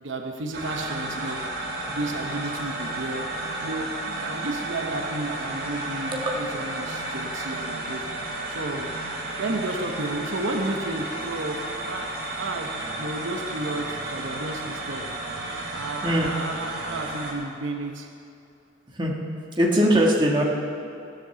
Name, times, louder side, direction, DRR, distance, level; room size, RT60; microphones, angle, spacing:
voice 1, 0.0-1.5 1.9-3.3 3.6-8.1 8.5-8.9 9.4-15.1 15.7-18.1, right 2 dB, 75° right, 3 dB, 1.0 m, -32 dB
sound 1, 0.5-17.3, right 2 dB, 50° right, 2.2 m, -32 dB
voice 2, 19.6-20.4, equal, 25° right, -1 dB, 1.4 m, -20 dB
14.5 x 7.8 x 6.9 m, 2.7 s
head